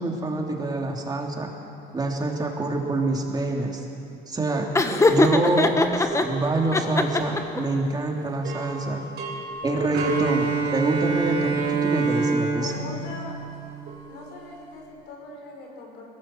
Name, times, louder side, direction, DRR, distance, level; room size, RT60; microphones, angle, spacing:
voice 1, 0.0-1.5 1.9-3.8 4.3-4.7 5.1-9.0 9.6-12.9, right 2 dB, 25° right, 0 dB, 3.1 m, -26 dB
Laughter, 4.7-6.2 6.7-7.6, left 2 dB, 15° left, 1.4 m, -20 dB
sound 1, 5.7-8.0 8.3-14.6, right 1 dB, 70° right, 4.0 m, -39 dB
Bowed string instrument, 9.9-14.0, right 4 dB, 90° right, 3.3 m, -26 dB
voice 2, 12.5-13.4 14.1-16.1, left 2 dB, 85° left, 1 dB, 5.1 m, -40 dB
21.5 x 18.0 x 7.7 m, 2.6 s
cardioid pair, 110°, 17 cm